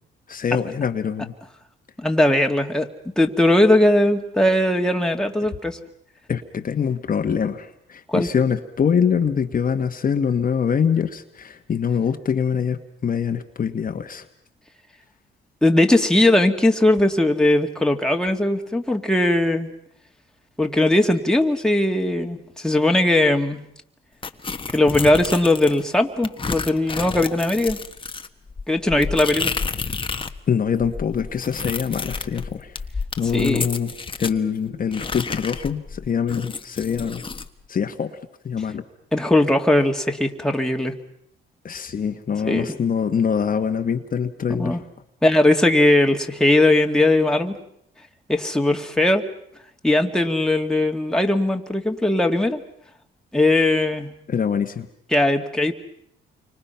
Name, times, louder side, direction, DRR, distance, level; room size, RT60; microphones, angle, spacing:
voice 1, 0.3-1.3 6.3-14.2 30.5-32.8 33.2-33.9 34.2-37.2 37.7-38.2 38.4-38.8 41.6-44.8 54.3-54.9, left 7 dB, 45° left, 6 dB, 1.5 m, -24 dB
voice 2, 2.0-2.9 3.2-5.8 8.1-8.3 15.6-19.7 20.6-23.6 24.7-27.8 28.7-29.6 33.3-33.7 39.1-40.9 42.4-42.7 44.6-44.8 45.2-47.6 48.3-49.3 49.8-52.6 53.3-54.1 55.1-55.7, left 1 dB, 5° left, 3 dB, 2.2 m, -19 dB
sound 1, 24.2-25.8 26.2-30.4 30.7-34.4 34.9-37.5, left 4 dB, 25° left, 1.3 m, -30 dB
29.5 x 25.0 x 5.8 m, 0.72 s
cardioid pair, 90°, 20 cm